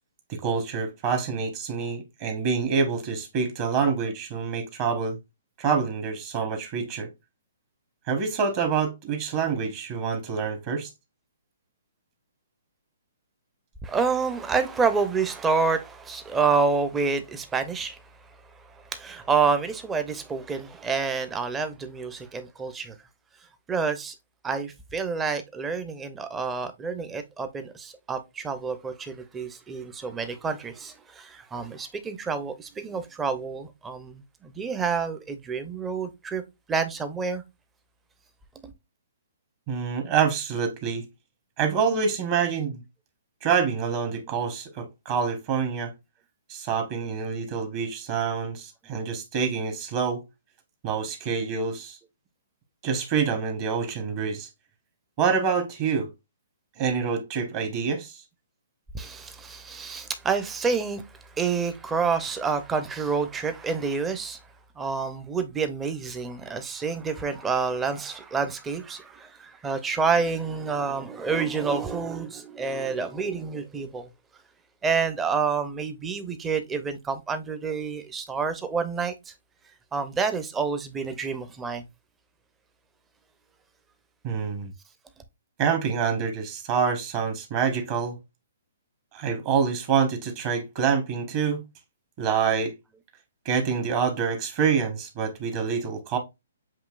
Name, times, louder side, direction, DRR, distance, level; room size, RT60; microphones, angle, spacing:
voice 1, 0.3-5.2 5.6-7.1 8.1-10.9 39.7-41.0 41.6-42.8 43.4-45.9 46.5-50.2 50.8-52.0 52.8-54.5 55.2-56.1 56.8-58.2 84.2-84.7 85.6-88.2 89.1-91.6 92.2-92.7 93.4-96.2, right 6 dB, 35° right, 1.1 m, -26 dB
voice 2, 13.8-18.0 18.6-23.0 23.7-24.1 24.4-36.4 36.7-37.4 38.6-38.7 58.9-64.4 64.8-74.1 74.8-79.3 79.9-81.8, right 5 dB, 10° right, 0.6 m, -28 dB
7.4 x 2.8 x 2.4 m
hypercardioid pair, 145°, 0 cm